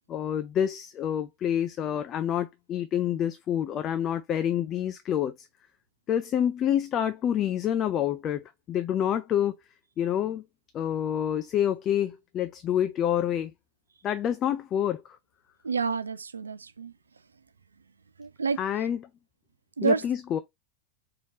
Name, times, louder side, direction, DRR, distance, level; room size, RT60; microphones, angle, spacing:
voice 1, 0.1-5.5 6.1-9.5 10.0-10.4 10.7-13.5 14.0-15.2 18.6-19.0 19.8-20.4, left 10 dB, 30° left, 0.4 m, -27 dB
voice 2, 15.6-16.9 18.2-18.6 19.8-20.0, right 5 dB, 75° right, 0.4 m, -28 dB
4.3 x 3.0 x 2.7 m
figure-of-eight pair, 90°, 0 cm